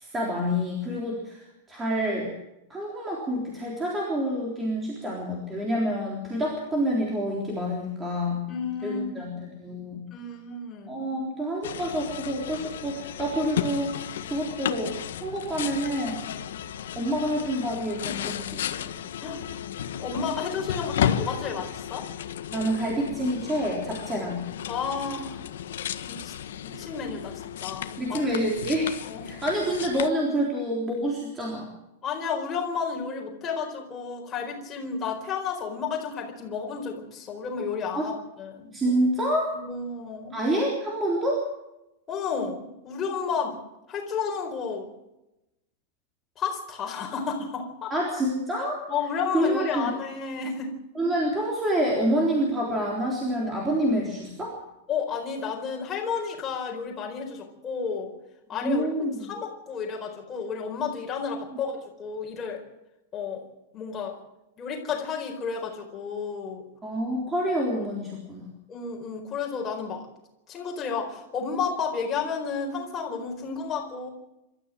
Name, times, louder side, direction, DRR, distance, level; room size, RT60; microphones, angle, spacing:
voice 1, 0.0-2.3 2.7-8.4 8.8-10.0 10.9-13.9 14.3-14.9 15.2-16.2 17.0-18.9 22.5-24.4 28.0-28.9 29.2-31.7 37.9-38.1 38.7-39.5 40.3-41.4 47.9-48.8 49.3-49.9 51.0-54.6 58.6-59.3 66.8-68.4, equal, 10° right, -2 dB, 3.7 m, -27 dB
voice 2, 8.5-9.3 10.1-11.0 19.2-19.4 20.0-22.1 24.7-25.4 26.0-26.3 26.6-28.2 29.0-29.2 32.0-38.7 39.5-40.4 42.1-43.6 43.9-44.9 46.4-47.9 48.9-50.7 54.9-58.1 58.5-58.9 59.3-62.6 63.1-63.4 63.7-64.1 64.6-66.6 68.7-70.0 70.5-74.1, left 5 dB, 15° left, 0 dB, 4.5 m, -32 dB
sound 1, 11.6-30.1, left 9 dB, 90° left, 1.6 m, -34 dB
26.5 x 13.5 x 7.6 m, 0.91 s
supercardioid pair, 175°, 0 cm